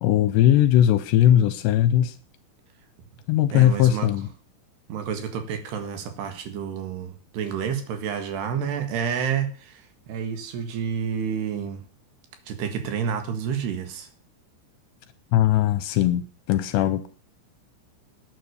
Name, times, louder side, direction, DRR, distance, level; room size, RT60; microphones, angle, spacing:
voice 1, 0.0-2.1 3.3-4.3 15.3-17.1, left 12 dB, 80° left, 2.7 m, -19 dB
voice 2, 3.5-4.1 4.9-11.8 12.5-14.1, right 7 dB, 65° right, 3.6 m, -29 dB
11.5 x 9.6 x 6.9 m
omnidirectional pair, 5.4 m